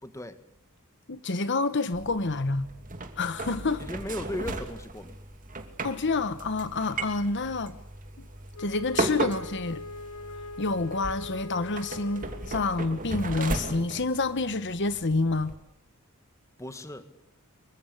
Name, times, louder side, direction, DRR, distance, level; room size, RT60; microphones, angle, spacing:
voice 1, 0.0-0.4 3.8-5.2 16.6-17.1, left 1 dB, 15° left, 1.8 m, -36 dB
voice 2, 1.1-2.7 3.2-3.8 5.8-7.8 8.2-8.3 8.6-9.8 10.6-15.5, left 3 dB, 55° left, 1.1 m, -28 dB
sound 1, 1.9-15.6, right 2 dB, 40° right, 2.8 m, -36 dB
Wind instrument woodwind instrument, 8.5-12.7, left 3 dB, 80° left, 1.1 m, -42 dB
26.0 x 23.5 x 8.3 m
head